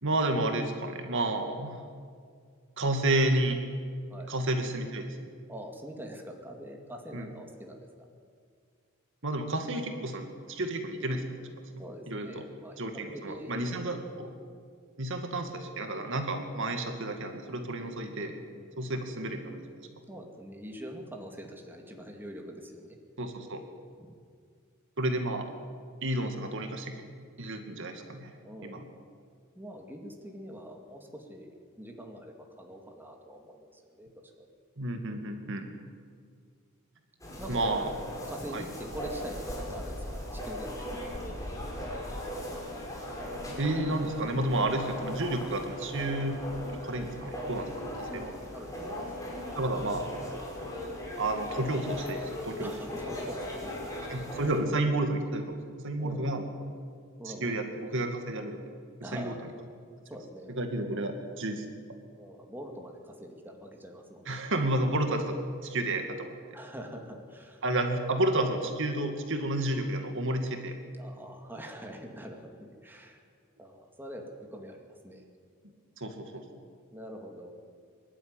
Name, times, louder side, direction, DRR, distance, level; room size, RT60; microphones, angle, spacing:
voice 1, 0.0-1.8 2.8-3.6 4.3-5.3 7.1-7.3 9.2-11.2 12.1-12.4 12.8-14.3 15.0-18.4 18.8-19.6 23.2-23.6 25.0-25.5 26.0-26.9 27.4-28.3 28.6-28.8 34.8-35.7 37.5-37.9 38.5-38.6 43.6-46.4 46.8-47.7 48.0-48.3 49.6-50.1 51.2-52.7 54.1-55.6 55.8-56.5 57.4-57.7 57.9-58.6 59.1-59.3 60.6-61.7 64.3-66.3 67.6-70.8 76.0-76.4, right 1 dB, 60° right, 5 dB, 2.2 m, -31 dB
voice 2, 5.5-8.1 11.8-13.9 18.5-18.7 20.1-23.0 24.0-24.1 28.4-28.9 29.5-31.5 31.8-34.5 37.4-42.0 48.1-48.9 52.6-54.4 56.0-56.5 57.2-57.6 59.0-59.4 60.1-60.6 62.2-64.4 66.5-67.6 70.9-73.2 73.6-75.2 76.9-77.5, equal, 10° right, 2 dB, 2.2 m, -44 dB
sound 1, 37.2-54.6, left 1 dB, 15° left, 4.9 m, -38 dB
23.5 x 12.0 x 9.9 m, 2.1 s
head